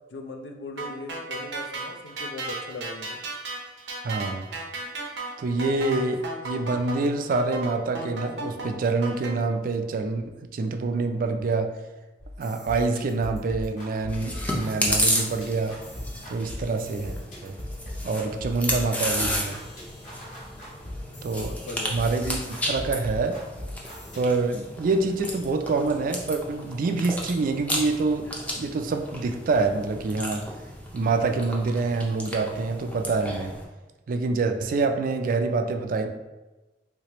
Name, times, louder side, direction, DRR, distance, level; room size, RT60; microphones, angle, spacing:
voice 1, 0.1-3.2 21.6-22.0, left 2 dB, 75° left, 4 dB, 0.5 m, -39 dB
sound 1, 0.8-9.3, right 3 dB, 85° right, 0.7 m, -34 dB
voice 2, 4.0-4.5 5.4-11.8 12.4-15.8 16.3-17.6 18.0-19.6 21.2-21.6 21.9-23.4 24.2-28.3 28.6-30.4 30.9-33.5 34.1-36.1, right 3 dB, 50° right, 6 dB, 0.3 m, -26 dB
sound 2, 12.2-24.2, left 1 dB, 45° left, 1.5 m, -39 dB
Chewing mastication, 14.1-33.6, equal, 10° left, 0.5 m, -33 dB
3.3 x 3.1 x 2.9 m, 1.1 s
head